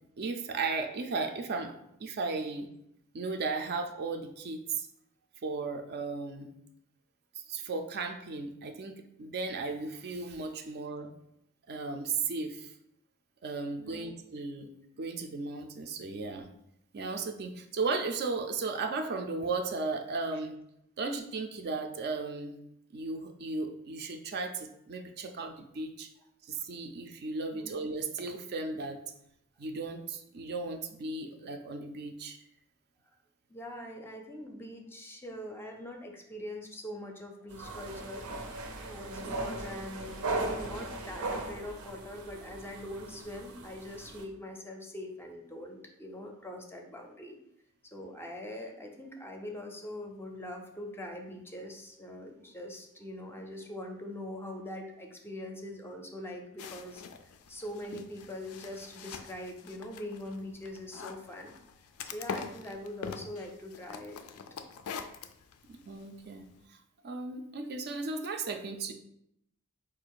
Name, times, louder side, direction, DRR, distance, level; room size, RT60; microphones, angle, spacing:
voice 1, 0.2-2.7 3.1-4.9 5.4-6.5 7.3-11.1 11.7-12.7 13.4-14.7 15.0-16.5 16.9-20.6 21.0-22.6 22.9-26.1 26.5-29.0 29.6-32.4 65.7-66.4 66.7-68.9, right 3 dB, 50° right, 6 dB, 0.4 m, -35 dB
voice 2, 33.5-38.3 38.8-47.4 47.8-57.0 57.5-61.5 62.1-64.2, left 1 dB, 10° left, 3 dB, 0.5 m, -43 dB
sound 1, 37.5-44.2, right 2 dB, 90° right, 0.7 m, -38 dB
sound 2, 56.6-66.6, left 6 dB, 80° left, 0.4 m, -44 dB
4.6 x 2.4 x 4.6 m, 0.77 s
head